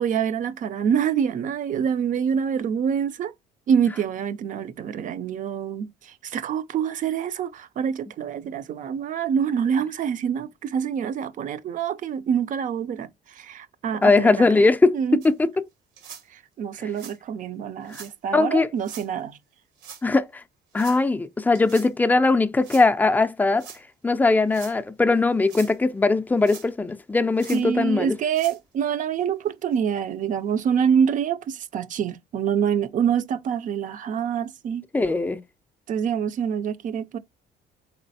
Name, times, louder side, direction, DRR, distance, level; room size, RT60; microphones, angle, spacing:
voice 1, 0.0-3.3 3.7-5.9 6.2-13.1 13.4-14.5 14.9-15.2 16.6-19.4 27.5-34.8 35.9-37.2, right 8 dB, 50° right, 0.5 m, -26 dB
voice 2, 14.0-15.4 18.0-18.1 18.3-18.7 20.0-20.4 20.7-23.7 24.0-28.2 34.9-35.4, left 3 dB, 10° left, 0.4 m, -20 dB
sound 1, 15.2-15.3 16.0-16.2 16.9-17.2 17.9-18.1 18.8-19.1 19.8-20.0 20.7-21.0 21.5-21.9 22.6-22.9 23.5-23.8 24.4-24.7 25.3-25.8 26.4-26.9 27.4-27.6 28.2-28.6 29.2-29.3 29.7-29.8 30.6-30.7, right 7 dB, 85° right, 1.3 m, -43 dB
4.1 x 3.9 x 2.7 m
cardioid pair, 110°, 17 cm